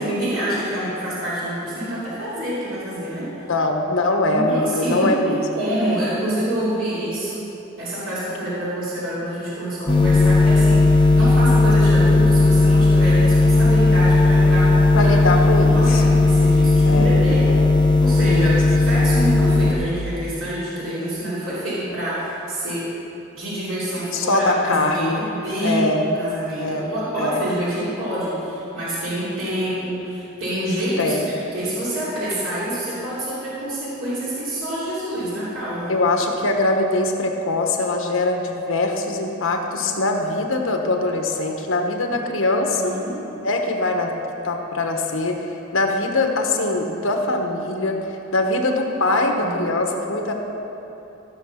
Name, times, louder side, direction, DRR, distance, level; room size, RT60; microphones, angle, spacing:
voice 1, 0.0-3.3 4.3-7.4 7.8-10.8 11.1-15.2 15.7-17.5 18.0-22.9 23.3-31.2 31.5-35.9 42.7-43.2 49.4-49.7, right 1 dB, 70° right, -10 dB, 2.9 m, -27 dB
voice 2, 3.5-5.4 14.9-16.0 16.8-17.2 17.4-17.7 18.3-18.6 24.1-25.2 25.6-26.0 26.6-27.4 31.0-31.3 35.9-42.9 43.4-44.1 44.4-45.4 45.7-48.0 48.3-50.3, left 2 dB, 75° left, 3 dB, 1.2 m, -22 dB
sound 1, 9.9-19.7, left 2 dB, 25° left, 0.9 m, -15 dB
14.0 x 6.5 x 5.7 m, 2.9 s
head